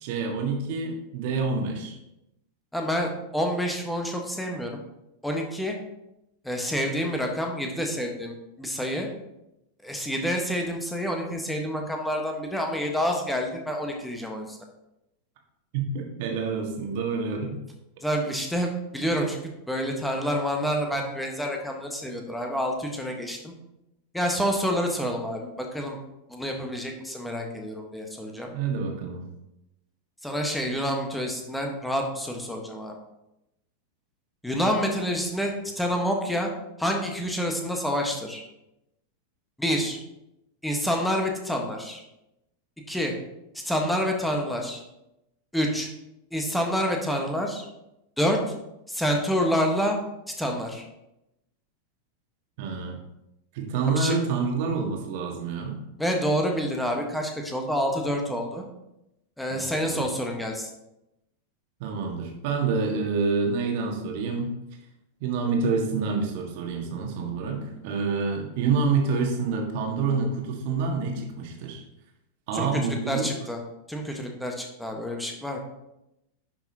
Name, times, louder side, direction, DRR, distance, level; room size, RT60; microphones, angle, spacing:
voice 1, 0.0-1.9 15.7-17.6 28.5-29.2 52.6-53.0 53.5-55.8 59.5-60.0 61.8-64.5 65.2-71.8 72.5-73.3, right 4 dB, 50° right, 1 dB, 1.7 m, -27 dB
voice 2, 2.7-4.8 5.2-5.8 6.4-9.1 9.8-14.6 18.0-19.4 19.7-23.5 24.1-26.0 26.3-28.5 30.2-33.0 34.4-36.5 36.8-38.4 39.6-40.0 40.6-42.0 42.9-43.1 43.6-44.8 45.5-45.9 46.3-47.7 48.2-48.4 48.9-50.0 50.4-50.8 53.9-54.1 56.0-58.6 59.4-60.7 72.5-73.6 73.9-75.6, equal, 5° left, 1 dB, 1.4 m, -28 dB
10.5 x 6.0 x 2.9 m, 0.88 s
figure-of-eight pair, 90°, 0 cm